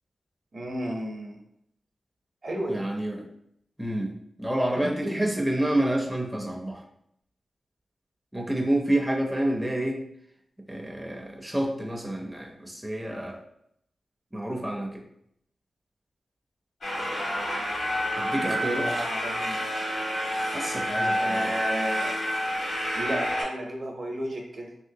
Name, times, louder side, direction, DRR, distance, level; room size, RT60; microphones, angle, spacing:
voice 1, 0.5-1.4 2.4-2.8 4.7-5.3 18.3-19.6 21.2-22.2 22.9-24.7, right 1 dB, 55° right, 1 dB, 0.7 m, -33 dB
voice 2, 2.7-3.2 3.8-4.1 4.4-6.8 8.3-10.1 10.7-13.4 14.3-15.0 18.2-18.9 20.5-21.5, right 1 dB, 5° right, 0 dB, 0.5 m, -28 dB
sound 1, 16.8-23.4, equal, 75° left, 1.5 m, -28 dB
3.0 x 2.8 x 2.7 m, 0.74 s
wide cardioid pair, 75°, 0 cm